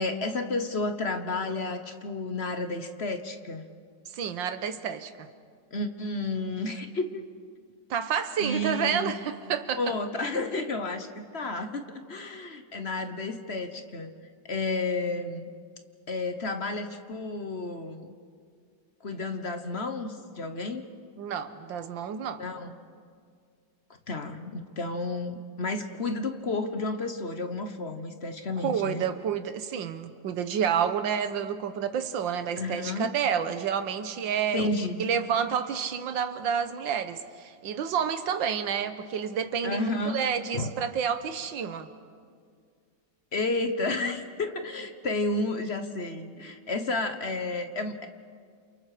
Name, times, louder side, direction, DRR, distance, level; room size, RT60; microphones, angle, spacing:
voice 1, 0.0-3.6 5.7-7.2 8.4-9.1 9.8-14.1 14.4-15.5 16.1-18.1 19.0-20.8 22.4-22.7 24.1-29.0 32.6-33.1 34.5-35.1 39.6-40.2 40.5-40.7 43.3-48.1, left 2 dB, 40° left, 7 dB, 1.2 m, -31 dB
voice 2, 4.1-5.3 7.9-10.0 21.2-22.4 28.6-34.7 35.0-41.9, right 7 dB, 80° right, 10 dB, 1.8 m, -29 dB
29.5 x 28.0 x 5.0 m, 2.1 s
omnidirectional pair, 2.0 m